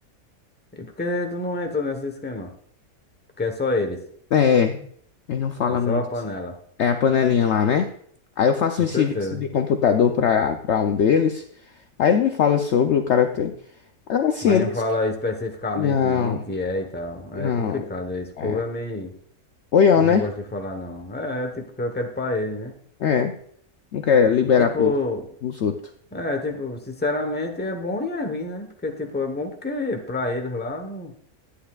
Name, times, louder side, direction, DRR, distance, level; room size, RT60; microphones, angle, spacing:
voice 1, 0.7-2.5 3.4-4.0 5.7-6.6 8.8-9.4 14.4-19.1 20.0-22.7 24.6-25.3 26.1-31.1, left 2 dB, 10° left, 4 dB, 0.8 m, -28 dB
voice 2, 4.3-4.9 5.3-6.0 6.8-7.9 8.4-11.4 12.0-13.5 14.1-14.7 15.8-16.4 17.3-17.8 18.4-18.6 19.7-20.2 23.0-23.3 23.9-24.9 25.4-25.7, left 7 dB, 65° left, 6 dB, 0.7 m, -20 dB
11.5 x 9.9 x 2.4 m, 0.63 s
omnidirectional pair, 1.6 m